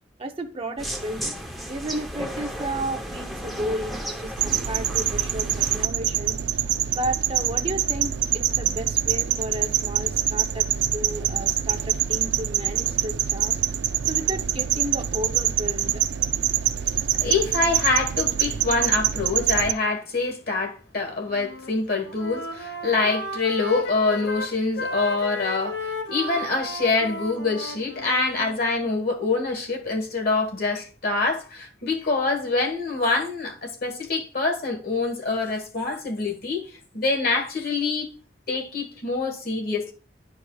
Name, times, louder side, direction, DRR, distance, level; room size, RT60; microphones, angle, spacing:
voice 1, 0.2-1.3 1.7-6.4 6.9-13.6 14.0-16.0, right 1 dB, 35° right, 0.8 m, -33 dB
sound 1, 0.8-5.9, equal, ahead, 0.9 m, -34 dB
sound 2, 4.4-19.7, right 11 dB, 80° right, 0.4 m, -25 dB
voice 2, 17.2-36.7 36.9-38.1 38.5-39.9, left 3 dB, 60° left, 1.5 m, -25 dB
Wind instrument woodwind instrument, 21.3-21.7 22.0-28.6, left 2 dB, 80° left, 1.3 m, -34 dB
11.5 x 4.7 x 2.4 m
head